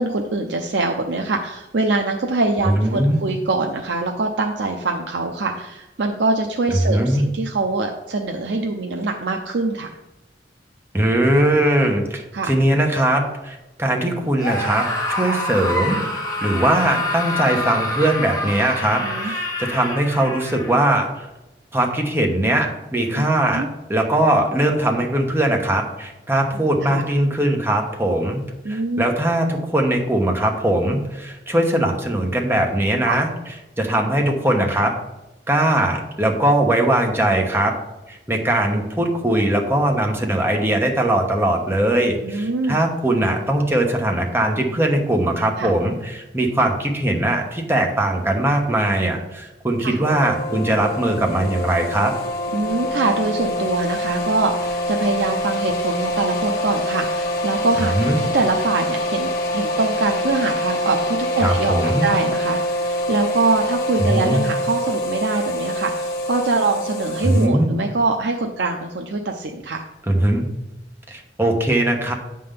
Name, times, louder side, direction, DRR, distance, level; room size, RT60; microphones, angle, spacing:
voice 1, 0.0-9.9 12.3-12.5 15.2-15.4 19.0-19.3 23.1-23.3 23.5-23.7 26.8-27.0 28.6-29.1 33.0-33.2 42.2-42.8 45.6-45.7 49.8-50.0 52.5-69.8, right 3 dB, 75° right, 2 dB, 0.6 m, -23 dB
voice 2, 2.6-3.2 6.7-7.2 10.9-21.3 21.7-23.6 23.9-33.3 33.8-34.9 35.5-37.7 38.1-52.1 57.9-58.2 61.4-62.1 64.0-64.4 67.2-67.7 70.1-70.5 71.1-72.1, right 1 dB, 15° right, 1 dB, 1.1 m, -20 dB
Screaming, 14.4-20.8, left 1 dB, 20° left, 1.8 m, -26 dB
sound 1, 50.0-67.5, equal, 55° left, 1.2 m, -25 dB
8.5 x 3.8 x 6.7 m, 0.99 s
head